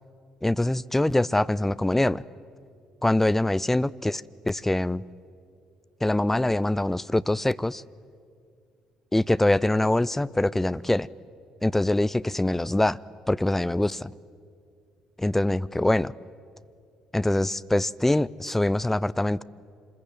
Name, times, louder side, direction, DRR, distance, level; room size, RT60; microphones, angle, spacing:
voice 1, 0.4-2.2 3.0-4.2 4.5-5.0 6.0-7.8 9.1-11.1 11.6-13.0 13.3-14.1 15.2-16.1 17.1-19.4, left 1 dB, 10° left, 0.6 m, -24 dB
26.5 x 21.0 x 9.3 m
figure-of-eight pair, 45°, 3 cm